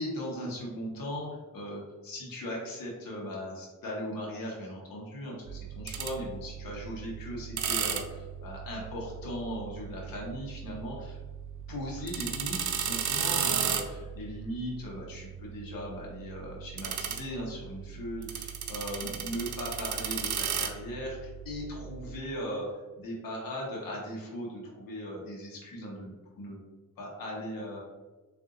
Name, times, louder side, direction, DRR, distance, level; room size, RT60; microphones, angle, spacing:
voice 1, 0.0-11.2 11.7-26.6 27.0-27.8, equal, 85° left, -3 dB, 1.1 m, -38 dB
sound 1, 5.5-22.2, right 8 dB, 60° right, 0.6 m, -35 dB
3.7 x 2.7 x 3.7 m, 1.3 s
cardioid pair, 85°, 33 cm